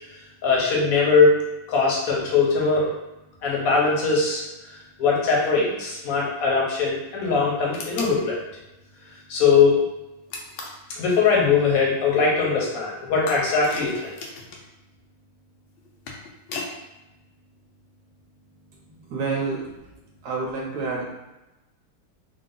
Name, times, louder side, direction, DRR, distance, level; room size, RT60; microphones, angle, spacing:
voice 1, 0.4-1.4 1.7-2.9 3.4-4.4 4.7-8.4 9.3-9.8 11.0-14.1, left 4 dB, 50° left, -4 dB, 1.2 m, -21 dB
sound 1, 7.7-8.2 10.3-10.8 13.3-14.7 15.8-16.7, left 3 dB, 75° left, 1.4 m, -35 dB
voice 2, 19.1-19.7 20.2-21.1, right 4 dB, 55° right, -3 dB, 1.4 m, -28 dB
3.8 x 2.3 x 3.9 m, 0.99 s
omnidirectional pair, 2.4 m